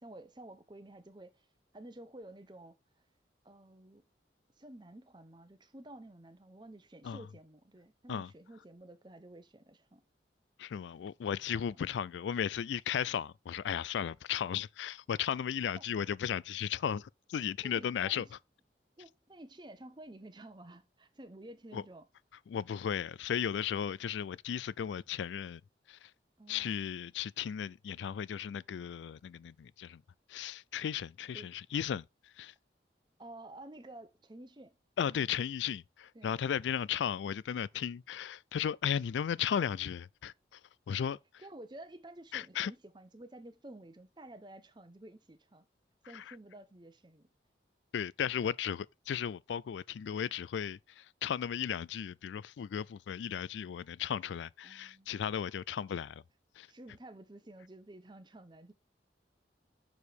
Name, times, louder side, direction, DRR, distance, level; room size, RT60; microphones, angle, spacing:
voice 1, 0.0-1.5 1.7-2.8 3.4-4.1 4.6-10.0 11.5-11.8 15.8-15.9 17.6-18.3 19.0-22.0 26.4-26.8 31.3-31.5 33.2-34.8 36.1-36.4 41.4-45.7 46.1-47.3 54.6-55.2 56.7-58.7, right 1 dB, 25° right, 0.8 m, -51 dB
voice 2, 10.6-18.3 21.7-21.8 22.5-25.6 25.9-26.1 26.5-30.0 30.3-32.5 35.0-40.6 40.9-41.2 42.3-42.7 46.1-46.3 47.9-56.2 56.6-56.7, left 8 dB, 85° left, 0.3 m, -35 dB
6.3 x 4.8 x 5.1 m
head